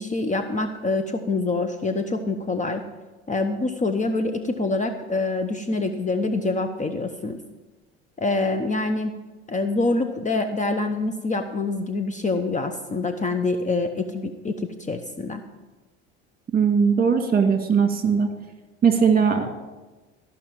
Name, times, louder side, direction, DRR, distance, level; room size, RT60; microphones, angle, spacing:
voice 1, 0.0-2.8 3.3-7.4 8.2-9.1 9.5-15.4, left 3 dB, 25° left, 7 dB, 1.0 m, -25 dB
voice 2, 16.5-18.3 18.8-19.5, right 6 dB, 30° right, 5 dB, 2.2 m, -19 dB
14.5 x 5.9 x 7.6 m, 1.2 s
hypercardioid pair, 80°, 32 cm